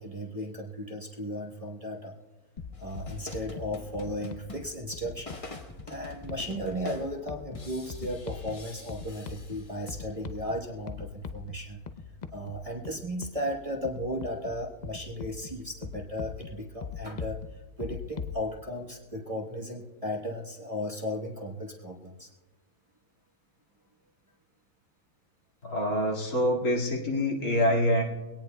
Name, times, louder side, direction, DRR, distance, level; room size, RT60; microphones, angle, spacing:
voice 1, 0.0-2.1 2.8-5.3 5.9-11.8 12.3-17.4 17.8-22.3, equal, 25° right, 0 dB, 1.1 m, -35 dB
sound 1, 2.6-18.4, left 6 dB, 60° left, 0.4 m, -42 dB
sound 2, 2.7-10.1, left 2 dB, 25° left, 1.1 m, -46 dB
voice 2, 25.6-28.0, equal, 75° left, -3 dB, 2.6 m, -26 dB
23.0 x 18.0 x 2.2 m, 1.2 s
omnidirectional pair, 1.6 m